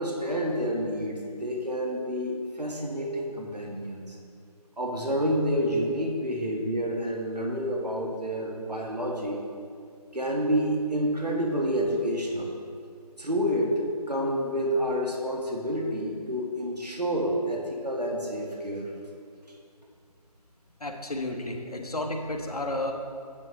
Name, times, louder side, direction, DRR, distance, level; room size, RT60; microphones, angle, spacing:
voice 1, 0.0-4.2 4.8-9.4 10.1-12.6 13.2-18.9, equal, 80° right, -1 dB, 1.6 m, -29 dB
voice 2, 20.8-22.9, left 1 dB, 65° left, 2 dB, 1.1 m, -32 dB
9.5 x 9.3 x 3.1 m, 2.3 s
figure-of-eight pair, 160°, 21 cm